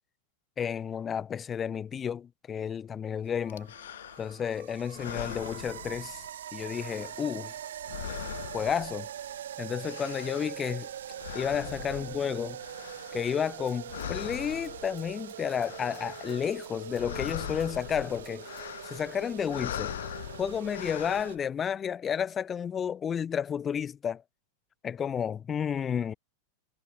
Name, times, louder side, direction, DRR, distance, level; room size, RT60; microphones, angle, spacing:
voice 1, 0.6-3.7 4.2-6.2 6.5-7.6 8.5-9.1 9.6-10.9 11.3-12.6 13.1-18.5 18.8-20.0 20.4-24.2 24.8-26.1, left 8 dB, 20° left, 0.6 m, -31 dB
sound 1, 3.4-21.4, right 11 dB, 60° right, 0.4 m, -43 dB
sound 2, 3.5-4.5 4.9-6.4 6.7-9.4 9.6-13.6 13.9-15.1 15.5-16.6 16.8-21.4, left 11 dB, 60° left, 0.7 m, -41 dB
Rattle (instrument), 13.6-18.6, right 7 dB, 20° right, 7.4 m, -63 dB
figure-of-eight pair, 90°, 0 cm